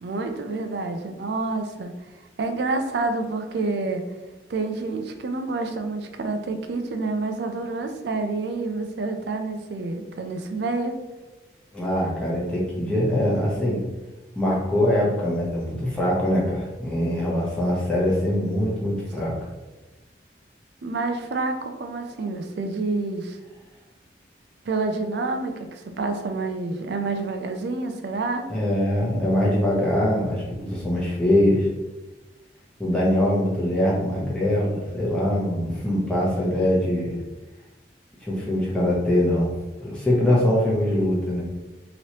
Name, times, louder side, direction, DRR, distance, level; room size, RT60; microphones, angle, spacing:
voice 1, 0.0-1.9 2.4-4.0 4.5-11.0 20.8-23.4 24.7-28.5, right 3 dB, 65° right, 6 dB, 0.4 m, -28 dB
voice 2, 11.7-13.8 14.3-19.4 28.5-31.7 32.8-37.2 38.2-39.5 39.8-41.4, left 1 dB, 5° left, -6 dB, 0.8 m, -23 dB
3.1 x 2.9 x 2.8 m, 1.1 s
head